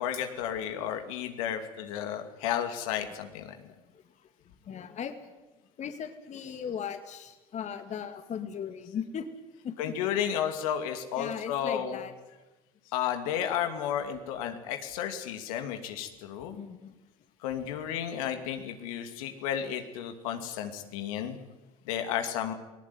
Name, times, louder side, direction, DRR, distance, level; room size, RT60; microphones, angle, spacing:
voice 1, 0.0-3.5 9.8-12.0 12.9-16.6 17.4-21.4 21.9-22.5, left 9 dB, 75° left, 6 dB, 2.5 m, -32 dB
voice 2, 3.6-4.0 4.6-5.1 5.8-9.3 9.6-10.4 11.1-12.1 16.5-16.9, left 8 dB, 40° left, 8 dB, 2.4 m, -38 dB
19.5 x 19.0 x 9.6 m, 1.1 s
hypercardioid pair, 80°, 18 cm